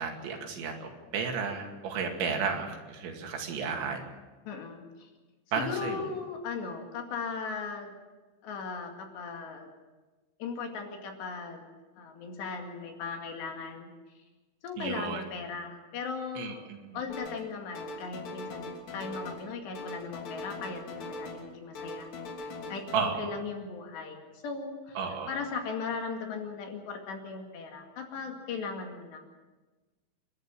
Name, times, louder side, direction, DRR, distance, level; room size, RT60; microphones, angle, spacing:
voice 1, 0.0-4.1 5.5-6.1 14.8-15.3 16.4-17.0 22.9-23.4 25.0-25.4, right 5 dB, 75° right, 3 dB, 4.5 m, -33 dB
voice 2, 4.5-5.1 5.6-7.9 8.4-9.7 10.4-11.7 12.0-13.9 14.6-16.7 16.9-22.1 22.4-22.9 23.2-25.0 25.3-29.3, left 5 dB, 70° left, 3 dB, 4.3 m, -38 dB
sound 1, 17.1-17.5 17.7-19.5 19.7-21.5 21.8-23.0, left 2 dB, 55° left, 4.4 m, -41 dB
29.0 x 12.0 x 7.6 m, 1.3 s
omnidirectional pair, 5.4 m